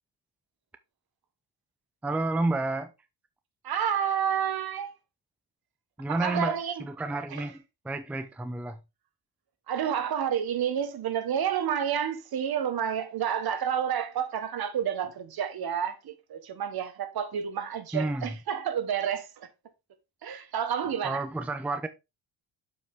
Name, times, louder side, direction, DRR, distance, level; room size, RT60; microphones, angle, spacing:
voice 1, 2.0-2.9 6.0-8.8 17.9-18.4 21.0-21.9, right 2 dB, 5° right, 0.6 m, -30 dB
voice 2, 3.6-4.9 6.1-6.8 7.3-7.5 9.7-19.5 20.2-21.2, right 8 dB, 55° right, 1.4 m, -30 dB
7.7 x 5.5 x 3.5 m
cardioid pair, 100°, 44 cm